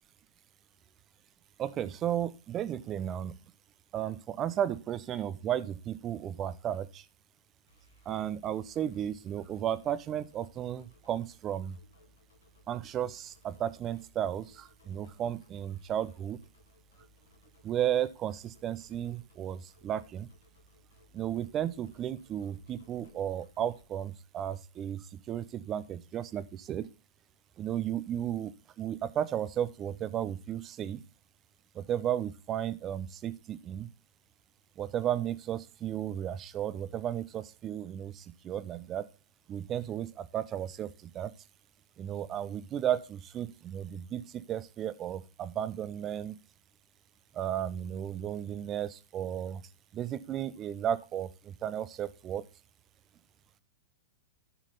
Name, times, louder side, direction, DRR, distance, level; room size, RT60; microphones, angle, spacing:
voice 1, 1.6-3.4 3.9-7.1 8.1-11.8 12.7-16.4 17.6-20.3 21.1-26.9 27.6-31.0 31.7-33.9 34.8-39.1 39.5-41.3 42.0-46.4 47.3-49.6 49.9-52.4, right 10 dB, 30° right, 16 dB, 0.7 m, -34 dB
sound 1, 7.7-23.8, left 1 dB, 80° left, 2.6 m, -63 dB
11.5 x 6.3 x 3.9 m, 0.30 s
hypercardioid pair, 100°, 0 cm